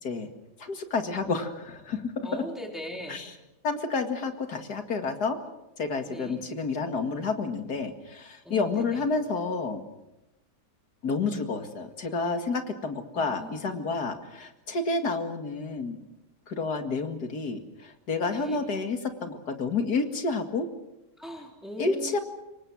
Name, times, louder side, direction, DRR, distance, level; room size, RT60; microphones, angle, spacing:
voice 1, 0.6-2.1 3.1-3.3 3.6-5.4 5.8-9.8 11.0-16.0 16.5-20.7 21.8-22.2, left 4 dB, 70° left, 6 dB, 2.6 m, -30 dB
voice 2, 2.2-3.2 6.1-6.4 8.4-9.0 13.2-13.8 18.3-18.6 21.2-22.2, equal, ahead, 1 dB, 3.8 m, -40 dB
27.0 x 23.5 x 6.3 m, 0.94 s
omnidirectional pair, 1.8 m